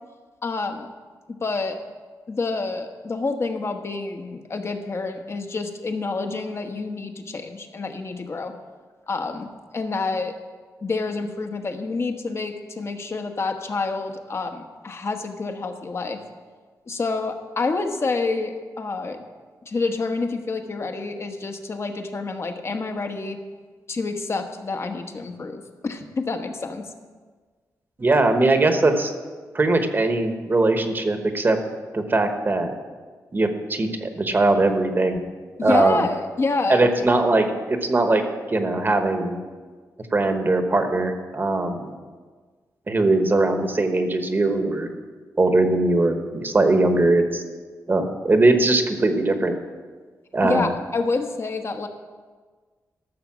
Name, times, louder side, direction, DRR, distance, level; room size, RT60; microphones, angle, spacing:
voice 1, 0.4-0.9 1.3-1.8 2.3-8.5 9.1-9.5 9.7-10.3 10.8-16.2 16.9-19.2 19.7-23.4 23.9-26.9 35.6-37.1 50.4-51.9, left 3 dB, 40° left, 6 dB, 1.1 m, -28 dB
voice 2, 28.0-29.1 29.5-31.6 31.9-32.7 33.3-35.2 35.6-36.0 36.7-38.2 38.5-39.4 40.1-41.9 42.9-44.9 45.4-47.4 47.9-49.5 50.3-50.7, right 2 dB, 30° right, 6 dB, 1.1 m, -20 dB
13.5 x 6.7 x 6.1 m, 1.5 s
wide cardioid pair, 100°, 7 cm